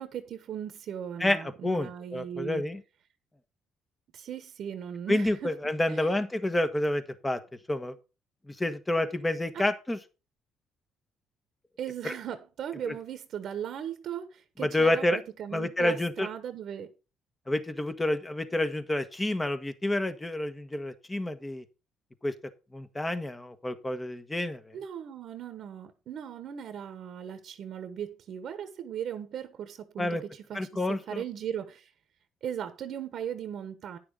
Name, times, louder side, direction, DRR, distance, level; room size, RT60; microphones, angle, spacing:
voice 1, 0.0-2.6 4.1-5.5 5.9-6.2 9.5-9.6 11.8-16.9 24.7-31.9 32.4-34.0, right 9 dB, 65° right, 1.2 m, -38 dB
voice 2, 1.2-2.8 5.1-7.4 7.7-7.9 8.5-10.0 12.0-12.1 12.8-12.9 14.6-15.2 15.5-16.3 17.5-21.6 22.2-22.3 22.7-24.7 30.0-30.2 30.5-31.2, left 1 dB, 15° left, 1.4 m, -29 dB
9.8 x 6.6 x 5.1 m
supercardioid pair, 80°, 0 cm